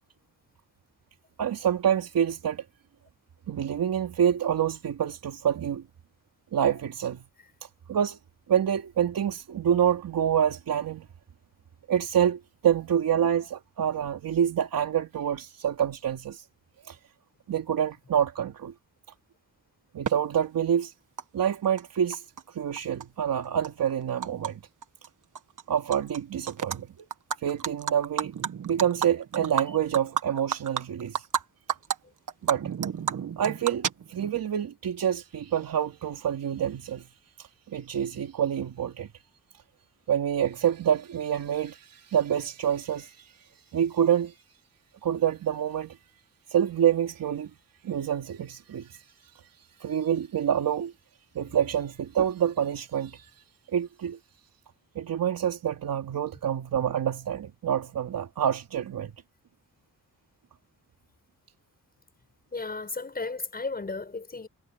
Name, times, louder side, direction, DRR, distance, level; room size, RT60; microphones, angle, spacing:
voice 1, 1.4-2.6 3.5-5.8 6.5-7.3 7.6-8.2 8.5-11.1 11.9-16.5 16.8-17.0 17.5-18.7 19.9-20.9 21.3-24.6 25.7-27.1 27.4-28.4 28.6-31.3 32.4-32.7 33.4-39.1 40.1-44.6 45.0-46.0 46.5-47.6 47.8-50.9 51.3-54.2 55.0-59.2, right 9 dB, 85° right, 3.5 m, -27 dB
Animal, 20.0-20.1 21.2-21.3 21.5-22.4 22.8-24.5 24.8-25.1 25.3-26.2 26.5-26.8 27.1-31.4 31.7-31.9 32.3-34.4, right 8 dB, 65° right, 1.4 m, -31 dB
voice 2, 62.5-64.5, left 3 dB, 25° left, 6.0 m, -34 dB
wide cardioid pair, 140°, 33 cm